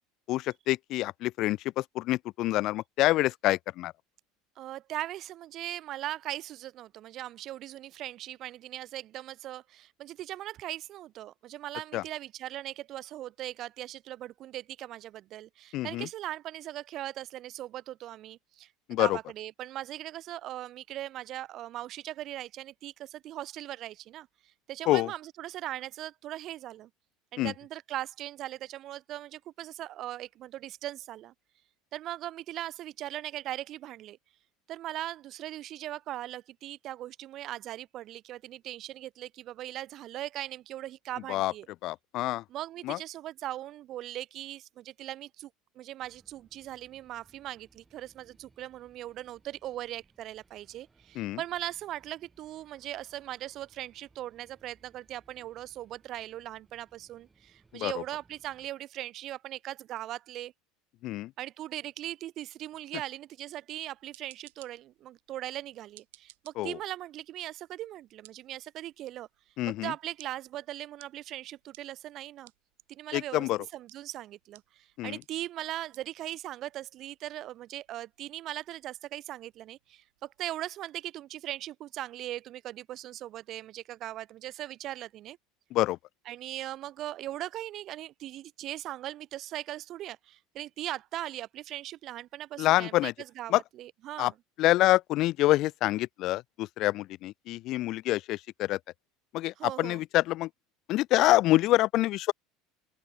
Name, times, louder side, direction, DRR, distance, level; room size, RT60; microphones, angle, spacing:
voice 1, 0.3-3.9 11.9-12.0 15.7-16.1 18.9-19.2 24.9-25.1 27.4-27.5 41.3-41.5 41.8-42.4 42.8-43.0 51.2-51.4 57.7-57.9 61.0-61.3 66.6-66.8 69.6-69.9 73.1-73.6 75.0-75.2 85.7-86.0 92.6-93.1 93.5-93.6 94.2-94.3 94.6-98.8 99.3-100.5 100.9-102.3, left 16 dB, 55° left, 0.3 m, -26 dB
voice 2, 4.6-18.7 19.0-26.9 27.3-31.3 31.9-34.2 34.7-41.7 42.5-45.5 45.8-60.5 61.4-69.3 69.7-72.5 72.9-85.4 86.2-94.3 99.6-100.0, right 13 dB, 50° right, 0.9 m, -39 dB
sound 1, 46.0-58.7, right 4 dB, 20° right, 7.6 m, -66 dB
sound 2, 63.8-80.6, right 20 dB, 80° right, 2.0 m, -62 dB
open air
hypercardioid pair, 90°, 0 cm